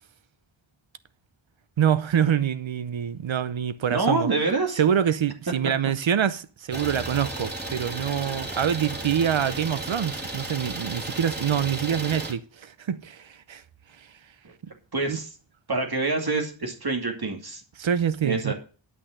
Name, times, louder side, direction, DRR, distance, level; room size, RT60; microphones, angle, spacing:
voice 1, 1.8-4.3 4.8-13.6 14.0-14.1 15.1-15.2 17.8-18.5, right 8 dB, 75° right, 0.8 m, -25 dB
voice 2, 3.9-4.8 14.4-14.5 14.9-15.3 15.7-17.6 18.2-18.5, right 3 dB, 50° right, 2.5 m, -26 dB
Idling, 6.7-12.3, right 2 dB, 20° right, 3.0 m, -34 dB
11.0 x 6.3 x 6.6 m
wide cardioid pair, 85°, 47 cm